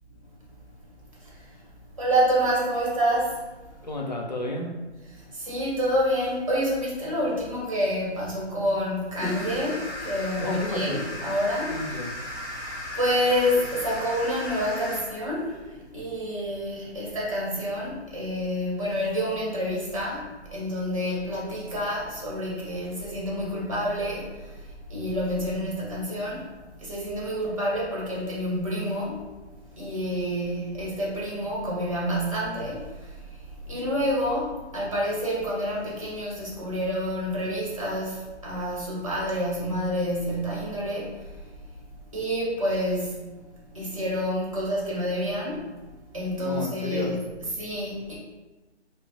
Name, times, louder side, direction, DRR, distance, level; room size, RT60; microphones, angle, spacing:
voice 1, 2.0-3.5 5.2-11.7 12.9-24.6 24.9-26.4 26.8-29.2 29.8-33.2 33.7-41.1 42.1-43.2 43.7-45.7 46.1-47.2 47.6-48.2, equal, 30° right, -5 dB, 0.8 m, -28 dB
voice 2, 3.8-4.7 10.4-11.0 11.7-12.1 46.4-47.2, left 1 dB, 40° left, -1 dB, 0.4 m, -31 dB
sound 1, 9.2-15.0, left 1 dB, 20° left, 1.1 m, -35 dB
4.9 x 2.0 x 2.7 m, 1.1 s
figure-of-eight pair, 170°, 35 cm